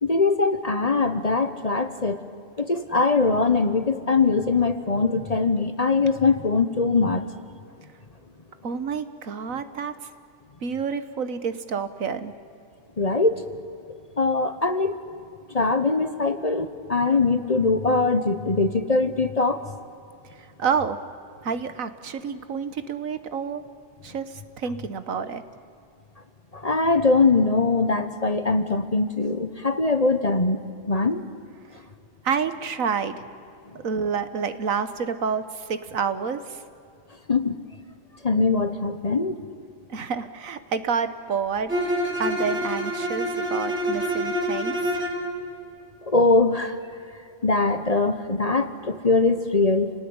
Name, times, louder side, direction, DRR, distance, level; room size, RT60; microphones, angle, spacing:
voice 1, 0.0-2.2 2.6-7.2 13.0-13.4 14.2-14.9 15.5-19.6 26.5-30.6 30.9-31.2 37.3-37.5 38.2-39.3 46.1-46.7 47.4-49.9, left 3 dB, 30° left, 10 dB, 1.0 m, -22 dB
voice 2, 8.6-10.1 10.6-12.3 20.3-21.0 21.4-23.6 24.0-25.4 32.2-33.2 33.7-36.6 39.9-41.7 42.2-44.9, right 6 dB, 80° right, 11 dB, 1.6 m, -29 dB
Bowed string instrument, 41.7-45.2, equal, 60° right, 3.5 m, -26 dB
29.0 x 19.0 x 9.7 m, 2.6 s
omnidirectional pair, 1.4 m